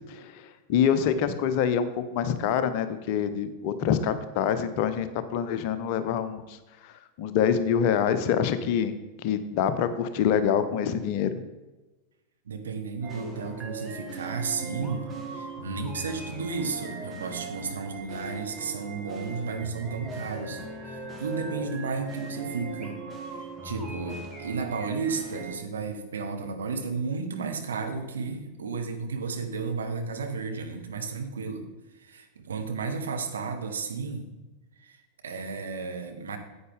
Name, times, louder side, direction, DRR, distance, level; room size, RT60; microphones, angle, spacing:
voice 1, 0.1-6.6 6.8-6.9 7.2-8.9 9.2-11.4, left 8 dB, 45° left, 11 dB, 0.8 m, -26 dB
voice 2, 12.4-23.0 23.3-31.7 31.9-34.3 34.8-36.4, right 4 dB, 70° right, 5 dB, 1.2 m, -33 dB
sound 1, 13.0-25.5, right 3 dB, 15° right, 1.7 m, -39 dB
9.6 x 8.7 x 3.7 m, 1.1 s
figure-of-eight pair, 90°, 0 cm